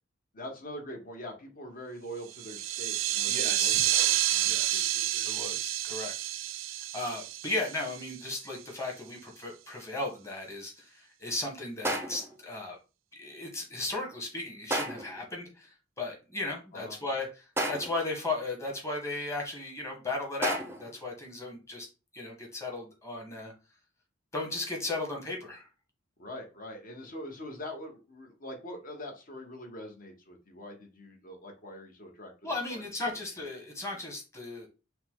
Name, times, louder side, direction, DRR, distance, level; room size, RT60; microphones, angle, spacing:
voice 1, 0.3-5.4 16.7-17.0 26.2-33.1, equal, 45° left, 2 dB, 1.2 m, -44 dB
sound 1, 2.3-8.4, right 13 dB, 85° right, 0.3 m, -29 dB
voice 2, 3.3-3.9 4.4-6.1 6.9-12.8 13.2-21.9 22.1-23.5 24.3-25.7 32.4-34.7, left 2 dB, 15° left, 0 dB, 1.3 m, -36 dB
sound 2, 11.8-12.4 14.7-15.2 17.6-18.1 20.4-20.9, right 1 dB, 10° right, 0.6 m, -32 dB
5.6 x 2.2 x 3.6 m, 0.31 s
head